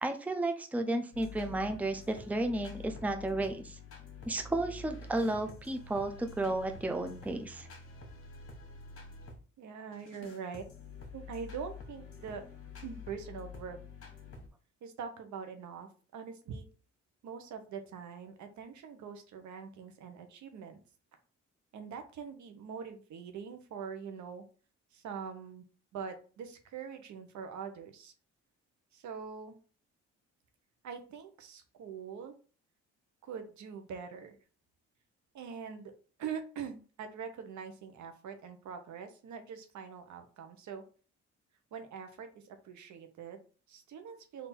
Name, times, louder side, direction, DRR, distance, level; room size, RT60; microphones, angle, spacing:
voice 1, 0.0-3.8 4.3-7.7, right 2 dB, 5° right, 6 dB, 0.6 m, -33 dB
sound 1, 1.1-9.4 9.9-14.5, left 4 dB, 50° left, 1.4 m, -48 dB
voice 2, 9.6-10.6 11.1-12.4 12.8-13.8 14.8-16.7 17.2-20.8 21.7-24.4 24.9-25.6 25.9-28.1 28.9-29.6 30.8-32.3 33.2-34.4 35.3-35.9 36.2-40.8 41.7-44.5, right 6 dB, 70° right, 6 dB, 0.9 m, -43 dB
3.7 x 2.7 x 4.3 m, 0.38 s
cardioid pair, 90°, 30 cm